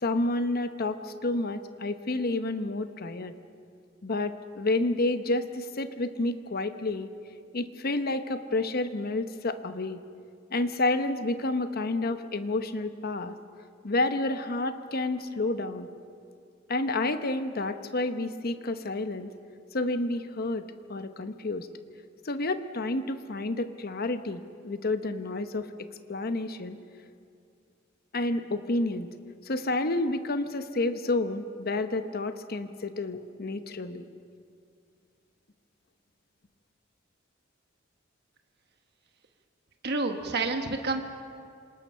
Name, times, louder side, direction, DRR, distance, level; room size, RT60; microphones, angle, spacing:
voice 1, 0.0-3.3 4.0-7.1 7.5-10.0 10.5-13.3 13.8-15.9 16.7-19.3 19.7-20.6 20.9-21.7 22.2-26.8 28.1-29.1 29.4-34.1, left 2 dB, 50° left, 9 dB, 1.0 m, -30 dB
voice 2, 39.8-41.0, right 3 dB, 55° right, 5 dB, 1.3 m, -29 dB
27.5 x 19.5 x 5.6 m, 2.3 s
head